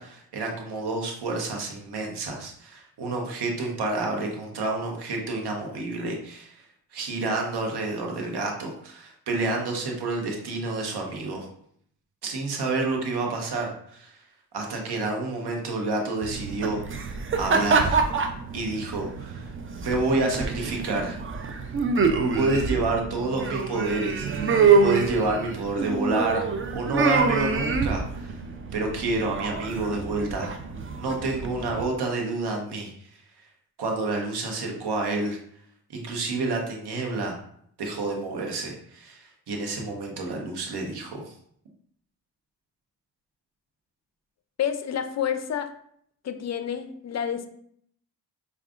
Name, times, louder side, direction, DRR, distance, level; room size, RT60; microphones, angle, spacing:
voice 1, 0.0-6.6 6.9-11.5 12.2-14.2 14.5-16.8 17.4-18.0 18.5-19.5 19.8-21.2 22.3-28.4 28.7-30.6 31.0-32.9 33.8-35.4 35.9-37.4 37.8-41.3, right 3 dB, 65° right, 1 dB, 1.0 m, -29 dB
sound 1, 16.2-31.8, right 4 dB, 30° right, 0.4 m, -26 dB
voice 2, 44.6-45.7 46.2-47.5, left 8 dB, 40° left, 10 dB, 0.4 m, -29 dB
4.7 x 2.4 x 2.4 m, 0.66 s
supercardioid pair, 50°, 44 cm